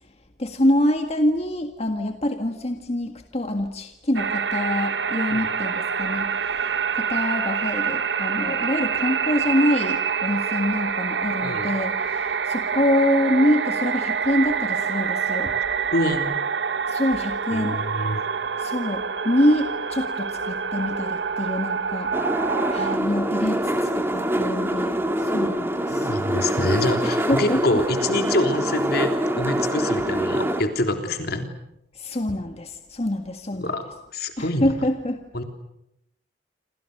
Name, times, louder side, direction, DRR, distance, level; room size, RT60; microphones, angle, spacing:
voice 1, 0.4-15.5 16.9-17.8 18.6-22.1 22.7-26.1 27.0-27.8 32.0-33.7 34.4-35.2, left 1 dB, 35° left, 5 dB, 1.7 m, -25 dB
sound 1, 4.2-23.0, right 6 dB, 75° right, 1.2 m, -26 dB
voice 2, 15.9-16.3 17.5-18.2 25.9-31.5 33.6-33.8 34.1-34.7 35.3-35.4, left 1 dB, 60° left, 6 dB, 3.5 m, -26 dB
sound 2, 22.1-30.6, right 1 dB, 15° right, 2.4 m, -25 dB
28.0 x 27.5 x 6.7 m, 0.81 s
head